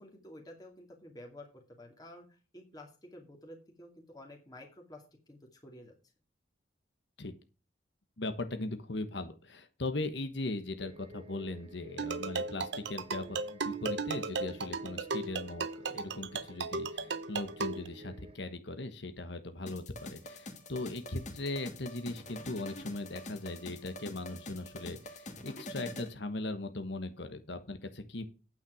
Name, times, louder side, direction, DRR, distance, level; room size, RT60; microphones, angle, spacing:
voice 1, 0.0-5.9, left 1 dB, 20° left, 1 dB, 2.4 m, -51 dB
voice 2, 8.2-28.2, left 2 dB, 60° left, 9 dB, 1.2 m, -39 dB
sound 1, 10.8-18.4, right 1 dB, 30° right, 1.0 m, -52 dB
sound 2, 12.0-17.9, right 4 dB, 60° right, 0.8 m, -36 dB
sound 3, 19.7-26.1, left 1 dB, 35° left, 2.2 m, -45 dB
9.2 x 9.0 x 5.0 m, 0.33 s
head